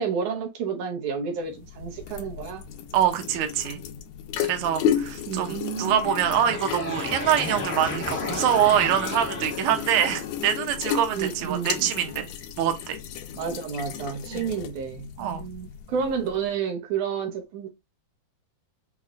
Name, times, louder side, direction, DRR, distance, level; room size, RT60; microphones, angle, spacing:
voice 1, 0.0-2.6 5.3-6.1 11.1-11.9 13.4-17.7, right 6 dB, 90° right, 2.4 m, -30 dB
sound 1, 1.4-16.5, left 9 dB, 75° left, 1.9 m, -34 dB
voice 2, 2.9-3.8 4.4-12.3 12.6-13.0 14.3-14.4 15.2-15.5, right 10 dB, 75° right, 2.0 m, -24 dB
sound 2, 5.5-10.5, left 2 dB, 40° left, 0.8 m, -34 dB
5.6 x 3.1 x 2.4 m
omnidirectional pair, 3.4 m